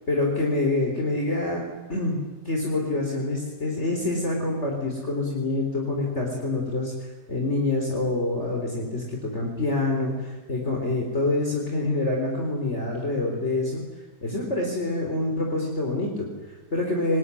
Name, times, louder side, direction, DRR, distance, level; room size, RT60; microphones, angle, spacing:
voice 1, 0.1-13.8 14.2-17.2, left 2 dB, 40° left, 0 dB, 4.2 m, -26 dB
26.0 x 20.5 x 9.9 m, 1.1 s
omnidirectional pair, 1.8 m